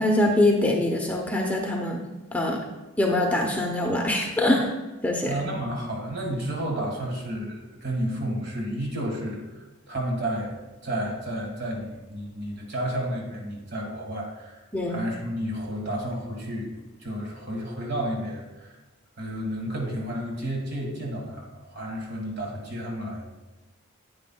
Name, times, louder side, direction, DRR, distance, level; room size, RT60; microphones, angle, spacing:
voice 1, 0.0-2.0 2.3-2.6 3.0-4.7 5.0-5.3 14.7-15.0, left 1 dB, 5° left, 0 dB, 0.7 m, -23 dB
voice 2, 5.2-14.6 14.9-16.7 17.0-18.7 19.2-23.3, right 1 dB, 50° right, 0 dB, 1.7 m, -31 dB
9.7 x 8.5 x 2.3 m, 1.1 s
head